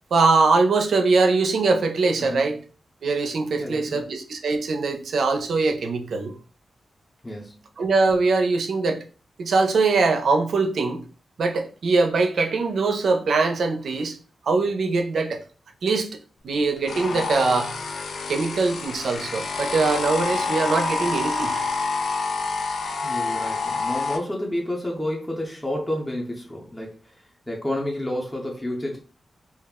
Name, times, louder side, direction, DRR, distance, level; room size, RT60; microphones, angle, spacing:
voice 1, 0.1-2.6 3.0-6.4 7.8-9.0 9.4-11.0 11.4-14.2 14.4-15.4 15.8-16.1 16.4-17.7 18.3-21.5, right 3 dB, 75° right, 0.4 m, -22 dB
voice 2, 3.6-4.1 7.2-7.6 23.0-29.0, left 1 dB, 10° left, 0.6 m, -30 dB
sound 1, 16.9-24.2, left 3 dB, 80° left, 0.3 m, -27 dB
2.3 x 2.0 x 3.5 m
wide cardioid pair, 115°, 0 cm